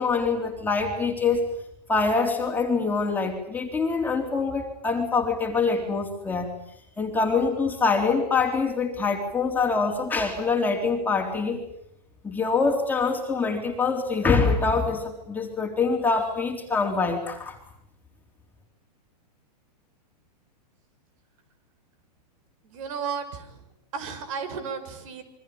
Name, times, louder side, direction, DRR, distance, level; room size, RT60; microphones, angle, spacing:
voice 1, 0.0-1.4 1.9-6.5 7.0-11.6 12.2-17.6, left 4 dB, 10° left, 2 dB, 3.8 m, -25 dB
voice 2, 22.6-23.6 23.9-25.2, right 6 dB, 55° right, 11 dB, 6.3 m, -33 dB
28.5 x 24.0 x 8.8 m, 0.76 s
hypercardioid pair, 150°, 21 cm